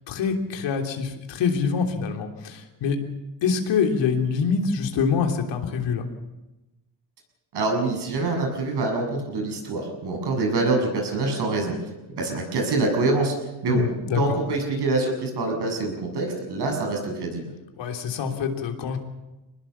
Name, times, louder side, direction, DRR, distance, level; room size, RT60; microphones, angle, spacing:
voice 1, 0.1-3.0 3.4-6.1 13.7-14.4 17.8-19.0, left 6 dB, 85° left, 4 dB, 3.3 m, -25 dB
voice 2, 7.5-11.7 12.2-13.3 13.6-13.8 14.2-17.4, right 2 dB, 65° right, 3 dB, 7.4 m, -25 dB
24.5 x 20.0 x 7.1 m, 1.0 s
cardioid pair, 105°, 43 cm